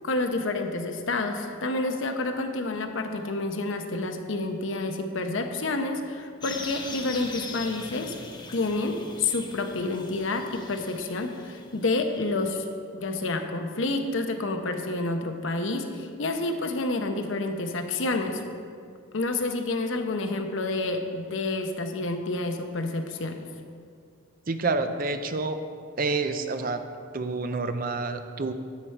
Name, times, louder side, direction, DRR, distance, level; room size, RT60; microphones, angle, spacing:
voice 1, 0.0-8.1 8.5-12.6 12.9-18.4 19.1-23.5, left 2 dB, 70° left, 5 dB, 0.8 m, -29 dB
sound 1, 6.4-12.6, left 3 dB, 20° left, 0.7 m, -41 dB
voice 2, 24.5-25.6 26.0-26.8 27.1-28.5, right 3 dB, 45° right, 8 dB, 0.5 m, -28 dB
9.8 x 7.9 x 4.5 m, 2.2 s
head